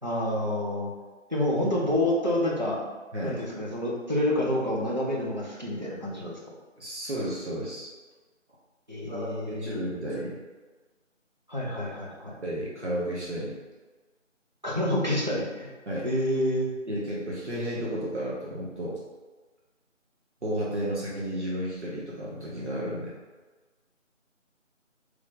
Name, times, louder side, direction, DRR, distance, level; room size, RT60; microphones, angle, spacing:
voice 1, 0.0-0.9 1.3-2.8 3.2-6.4 8.9-9.8 11.5-12.4 14.6-15.7 16.0-16.7, left 1 dB, 35° right, -4 dB, 0.6 m, -28 dB
voice 2, 3.1-3.4 6.8-7.9 9.0-10.4 12.4-13.6 15.9-16.1 16.9-19.0 20.4-23.2, right 1 dB, 60° right, -6 dB, 0.9 m, -32 dB
3.6 x 3.1 x 2.5 m, 1.3 s
figure-of-eight pair, 165°, 38 cm